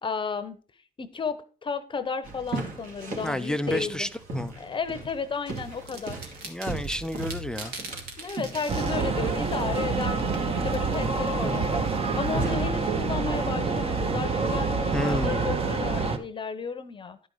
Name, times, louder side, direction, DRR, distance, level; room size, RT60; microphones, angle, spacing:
voice 1, 0.0-0.6 1.0-4.1 4.6-6.3 8.2-17.3, left 5 dB, 30° left, 0.9 m, -33 dB
sound 1, 2.2-12.9, right 2 dB, 55° right, 2.8 m, -38 dB
voice 2, 3.2-4.5 6.4-7.7 14.9-15.4, left 1 dB, 5° left, 0.5 m, -30 dB
sound 2, 5.6-12.4, right 4 dB, 70° right, 2.0 m, -44 dB
sound 3, 8.7-16.2, right 4 dB, 35° right, 1.2 m, -27 dB
11.0 x 5.3 x 4.8 m
cardioid pair, 110°, 17 cm